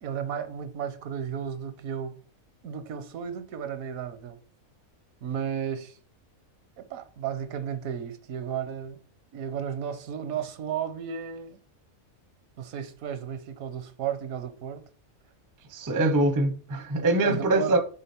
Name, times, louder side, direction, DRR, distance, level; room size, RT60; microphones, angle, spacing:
voice 1, 0.0-2.2 2.6-4.4 5.2-6.0 6.8-9.0 9.3-11.6 12.6-14.9 17.2-17.7, right 8 dB, 75° right, 1.1 m, -34 dB
voice 2, 15.7-17.8, right 2 dB, 20° right, 0.5 m, -23 dB
6.8 x 3.8 x 4.3 m
omnidirectional pair, 1.5 m